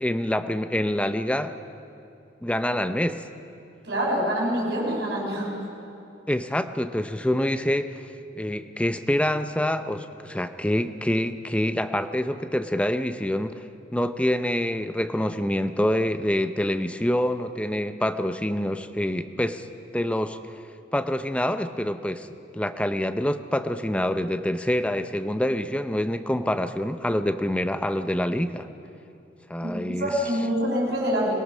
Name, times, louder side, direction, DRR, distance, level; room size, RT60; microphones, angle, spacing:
voice 1, 0.0-1.5 2.4-3.3 6.3-7.9 8.3-13.6 13.9-19.7 19.9-20.6 20.9-22.3 22.5-28.7 29.5-30.1, left 1 dB, 5° left, 9 dB, 0.6 m, -26 dB
voice 2, 3.8-5.5 29.6-31.4, equal, 60° right, -3 dB, 6.3 m, -26 dB
23.5 x 18.0 x 6.3 m, 2.7 s
head